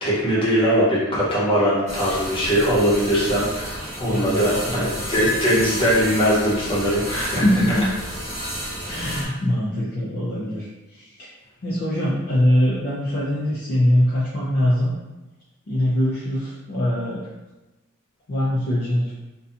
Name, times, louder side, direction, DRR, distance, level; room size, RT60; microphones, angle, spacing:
voice 1, 0.0-7.4 8.9-9.2, equal, 25° left, -8 dB, 0.8 m, -21 dB
sound 1, 1.9-9.3, equal, 30° right, 0.8 m, -32 dB
voice 2, 4.1-5.1 7.4-7.9 8.8-11.1 11.6-14.9 15.7-17.2 18.3-19.1, left 1 dB, 45° left, -7 dB, 0.4 m, -22 dB
2.6 x 2.2 x 2.5 m, 1.1 s
head